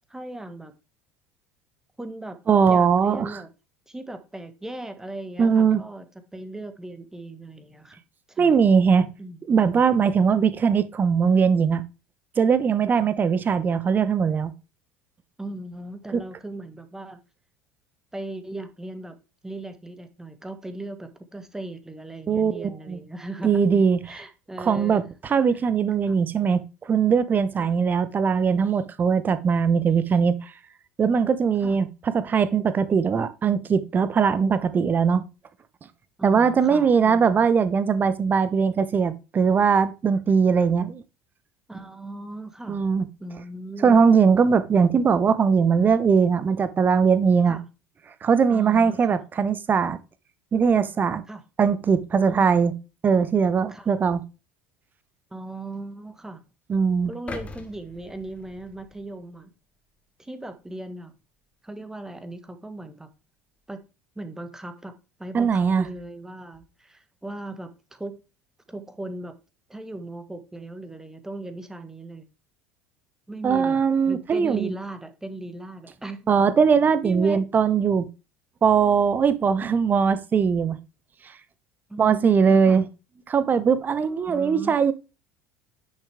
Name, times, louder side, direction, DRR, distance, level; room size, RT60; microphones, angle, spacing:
voice 1, 0.1-0.7 2.0-3.5 3.9-6.0 6.3-8.0 8.3-8.6 9.2-9.4 12.9-13.1 15.4-17.2 18.1-19.1 19.4-23.6 24.0-25.1 26.1-26.2 27.6-27.7 31.6-31.8 36.2-37.5 41.7-42.9 43.2-44.1 47.5-47.7 48.5-49.2 51.3-51.4 52.3-52.7 53.7-53.9 55.3-56.4 57.1-59.5 60.2-61.1 61.6-63.1 63.7-63.8 64.1-64.9 65.2-68.2 68.7-69.3 69.7-72.3 73.3-76.3 77.0-77.4 81.9-82.8 84.0-84.8, right 2 dB, 10° right, 1.5 m, -38 dB
voice 2, 2.5-3.3 5.4-5.8 8.4-9.1 9.5-11.8 12.4-14.5 16.1-16.2 22.3-23.0 23.4-24.2 24.6-25.0 25.3-30.5 31.0-31.9 32.1-35.2 36.2-41.0 42.7-43.1 43.8-47.6 48.2-50.0 50.5-51.2 51.6-52.7 53.0-54.2 56.7-57.1 65.3-65.9 73.4-74.7 76.3-78.1 78.6-80.8 82.0-82.9 83.3-84.9, right 6 dB, 30° right, 1.0 m, -20 dB
sound 1, 57.3-59.4 59.9-60.1, left 3 dB, 20° left, 1.3 m, -41 dB
10.0 x 6.2 x 3.6 m
figure-of-eight pair, 65°, 7 cm